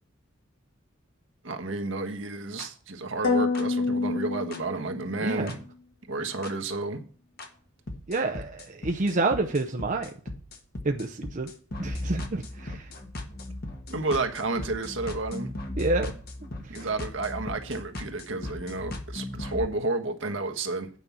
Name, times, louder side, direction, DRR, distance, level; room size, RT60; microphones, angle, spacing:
voice 1, 1.4-5.6 6.1-7.0 13.9-15.5 16.7-20.9, right 3 dB, 70° right, 1.4 m, -31 dB
sound 1, 2.6-2.7 3.6-3.7 4.5-4.6 5.5-5.6 6.4-6.5 7.4-7.5 7.9-19.7, left 1 dB, 50° left, 1.3 m, -37 dB
sound 2, 3.2-5.2, left 3 dB, 65° left, 3.1 m, -27 dB
voice 2, 8.1-10.1 10.8-11.5 11.8-12.9 15.8-16.1, right 2 dB, 40° right, 0.6 m, -28 dB
9.0 x 5.3 x 7.3 m
head